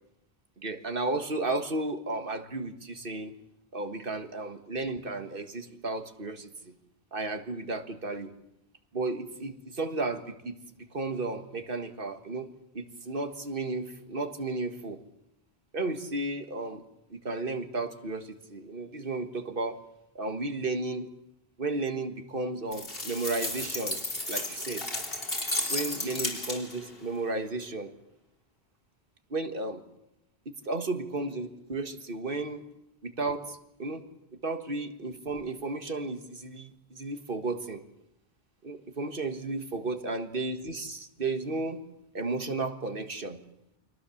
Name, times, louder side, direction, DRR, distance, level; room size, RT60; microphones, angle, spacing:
voice 1, 0.6-3.3 3.7-6.7 7.1-8.3 8.9-10.6 10.9-12.5 12.7-15.0 15.7-16.8 17.1-19.8 20.2-21.1 21.6-24.0 24.3-24.9 25.7-27.9 29.3-29.8 30.5-32.6 33.0-34.0 34.4-37.8 38.6-41.8 42.1-43.4, right 2 dB, 55° right, 8 dB, 1.8 m, -33 dB
sound 1, 22.7-26.9, left 2 dB, 60° left, 3.9 m, -33 dB
29.5 x 23.0 x 7.1 m, 0.83 s
omnidirectional pair, 1.1 m